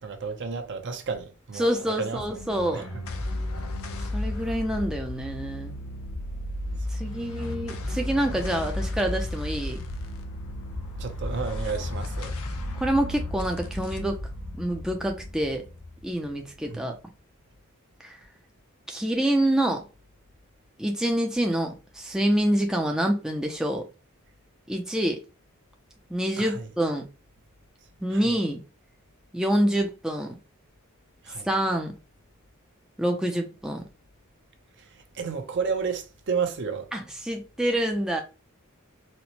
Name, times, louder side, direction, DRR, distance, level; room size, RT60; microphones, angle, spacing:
voice 1, 0.0-2.4 2.7-3.0 11.0-12.4 16.7-17.0 26.4-26.7 28.1-28.3 31.2-31.5 34.8-36.9, right 5 dB, 55° right, 0.6 m, -32 dB
voice 2, 1.6-2.8 4.1-5.7 6.9-9.8 12.7-14.2 14.6-15.6 16.0-17.0 18.0-18.1 18.9-19.8 20.8-23.8 24.7-25.2 26.1-27.0 28.0-28.6 29.3-30.4 31.5-31.9 33.0-33.8 36.9-38.2, right 1 dB, 5° right, 0.4 m, -26 dB
sound 1, 2.2-16.8, left 1 dB, 75° left, 0.6 m, -34 dB
4.2 x 2.1 x 2.8 m
head